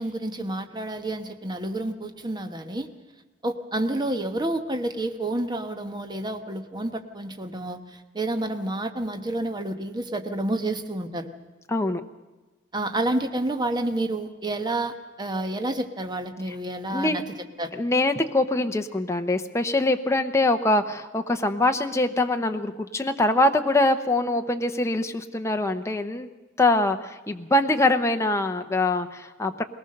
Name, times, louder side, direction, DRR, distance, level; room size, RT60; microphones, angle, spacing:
voice 1, 0.0-2.9 3.4-11.3 12.7-17.2 17.6-17.7, right 1 dB, 20° right, 7 dB, 1.1 m, -29 dB
voice 2, 11.7-12.0 16.5-16.6 16.9-17.2 17.7-26.3 26.6-29.6, left 2 dB, 15° left, 5 dB, 0.8 m, -23 dB
21.0 x 18.5 x 6.6 m, 1.2 s
head